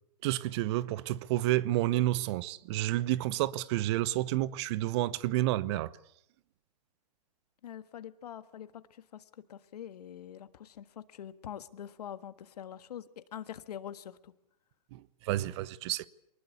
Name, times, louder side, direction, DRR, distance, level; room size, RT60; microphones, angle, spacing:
voice 1, 0.2-5.9 14.9-16.1, right 15 dB, 40° right, 0.9 m, -30 dB
voice 2, 7.6-14.3, left 10 dB, 70° left, 1.6 m, -45 dB
23.5 x 20.0 x 8.4 m
hypercardioid pair, 135°, 21 cm